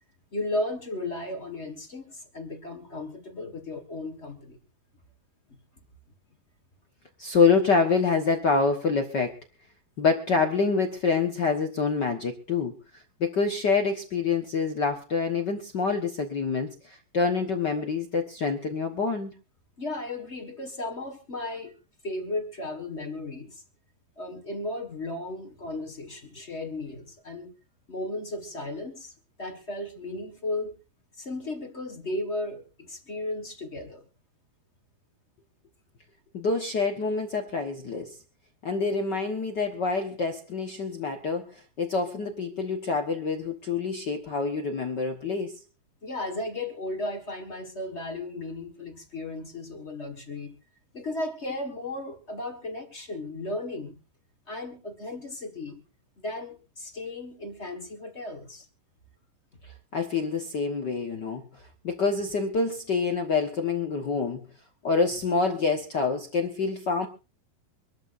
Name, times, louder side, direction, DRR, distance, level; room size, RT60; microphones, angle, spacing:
voice 1, 0.3-4.6 19.8-21.8 22.0-23.6 24.2-27.5 27.9-29.1 29.4-30.8 31.1-34.0 46.0-50.6 50.9-54.0 54.5-55.8 56.2-58.7, left 2 dB, 40° left, 6 dB, 0.9 m, -35 dB
voice 2, 7.2-9.4 10.0-19.3 36.3-38.2 38.6-45.6 59.9-61.4 61.8-64.4 64.8-67.1, left 4 dB, 70° left, 5 dB, 1.0 m, -26 dB
25.0 x 13.0 x 2.6 m, 0.30 s
omnidirectional pair, 4.1 m